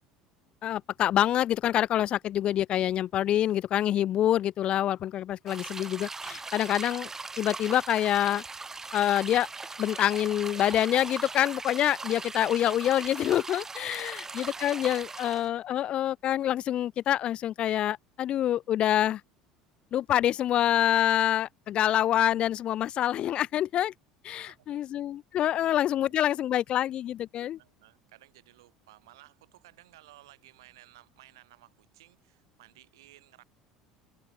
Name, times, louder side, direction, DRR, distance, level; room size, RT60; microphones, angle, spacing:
voice 1, 0.6-7.1 7.4-8.4 8.9-9.5 9.8-19.2 19.9-23.9 24.2-27.6, left 11 dB, 50° left, 0.3 m, -26 dB
sound 1, 5.5-15.5, right 3 dB, 20° right, 2.3 m, -40 dB
voice 2, 13.9-14.7 15.0-15.1 24.3-24.8 25.4-26.4 27.6-33.4, right 16 dB, 80° right, 4.9 m, -57 dB
open air
hypercardioid pair, 75°, 2 cm